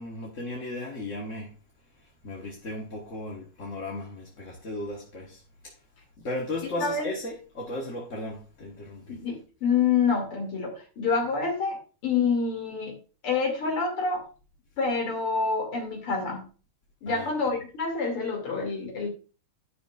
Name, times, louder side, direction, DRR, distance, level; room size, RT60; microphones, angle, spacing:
voice 1, 0.0-1.5 2.0-5.8 6.2-9.2 17.1-17.6, left 1 dB, 40° left, 1.5 m, -36 dB
voice 2, 9.1-13.0 13.2-14.2 14.8-16.4 17.0-19.1, left 5 dB, 80° left, 3.5 m, -27 dB
10.5 x 10.0 x 2.5 m
omnidirectional pair, 2.4 m